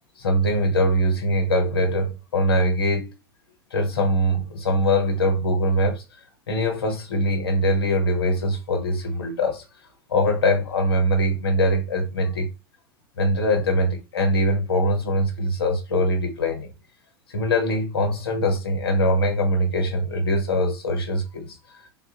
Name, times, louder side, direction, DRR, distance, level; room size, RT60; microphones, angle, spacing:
voice 1, 0.2-3.1 3.7-6.0 6.5-9.6 10.1-12.5 13.2-16.7 17.3-21.6, equal, 80° left, 0.8 m, -22 dB
3.5 x 2.4 x 2.7 m
hypercardioid pair, 90°, 12 cm